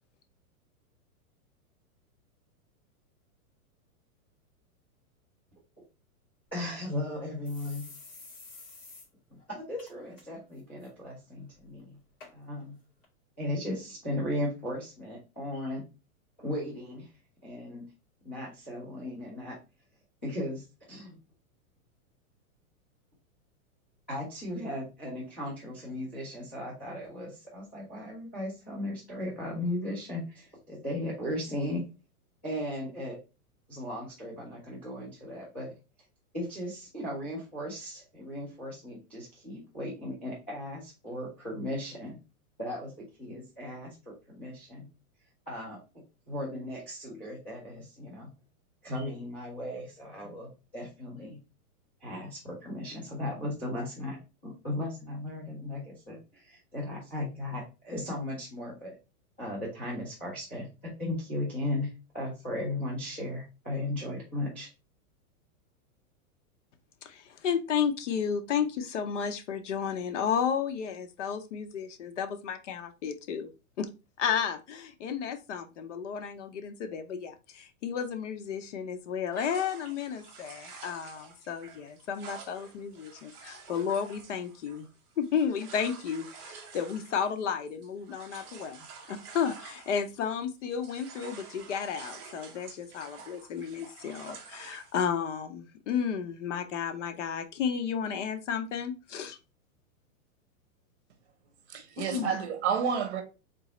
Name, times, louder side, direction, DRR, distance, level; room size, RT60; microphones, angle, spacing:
sound 1, 6.5-6.6 6.9-7.0 7.4-9.1 9.4-9.5 9.8-10.2 10.6-10.9 11.6-11.7 12.2-12.3 13.0-13.1, left 3 dB, 40° left, 2.3 m, -49 dB
voice 1, 6.5-7.9 9.5-12.0 12.3-12.8 13.4-15.8 16.4-17.1 17.4-17.9 18.2-19.6 20.2-21.2 24.1-31.9 32.4-33.2 33.7-35.7 36.3-42.2 42.6-42.9 43.2-44.9 45.5-45.8 46.3-48.3 48.8-51.4 52.0-58.9 59.4-64.7, left 1 dB, 10° left, 0.3 m, -36 dB
voice 2, 67.0-73.5 73.8-73.9 74.2-84.9 85.2-99.4 102.0-102.4, left 7 dB, 55° left, 0.7 m, -32 dB
sound 2, 79.3-90.4 90.7-95.0, right 5 dB, 25° right, 0.7 m, -49 dB
voice 3, 101.7-103.2, right 7 dB, 50° right, 1.1 m, -30 dB
3.8 x 2.8 x 4.1 m
supercardioid pair, 165°, 44 cm